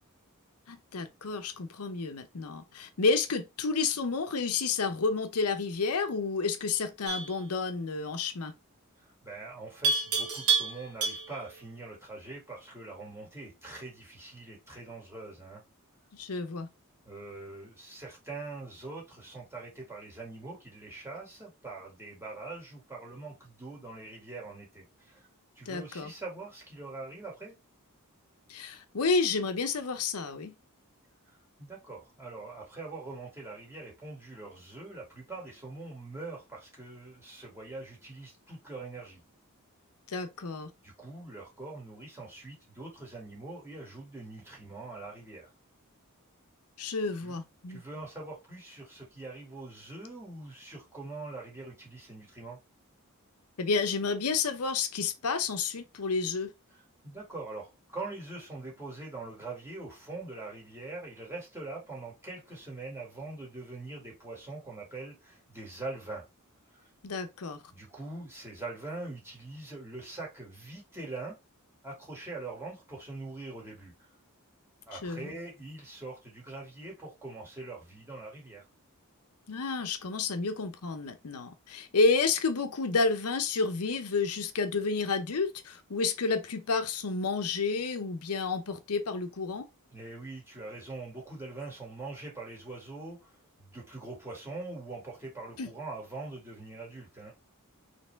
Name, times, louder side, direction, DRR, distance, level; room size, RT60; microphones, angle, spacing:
voice 1, 0.7-8.5 16.1-16.7 25.7-26.1 28.5-30.5 40.1-40.7 46.8-47.8 53.6-56.5 67.0-67.6 74.9-75.4 79.5-89.7 95.6-95.7, left 4 dB, 75° left, 0.7 m, -30 dB
Livestock farm animals working animals, 7.1-7.4 9.8-11.5, right 5 dB, 80° right, 1.3 m, -29 dB
voice 2, 9.0-15.6 17.1-25.2 25.6-27.5 31.6-39.2 40.8-45.5 47.2-47.4 47.7-52.6 57.0-66.2 66.7-66.8 67.7-71.4 71.8-73.9 74.9-78.6 89.9-93.3 93.6-97.3, right 3 dB, 10° right, 2.1 m, -43 dB
4.4 x 3.3 x 3.4 m
head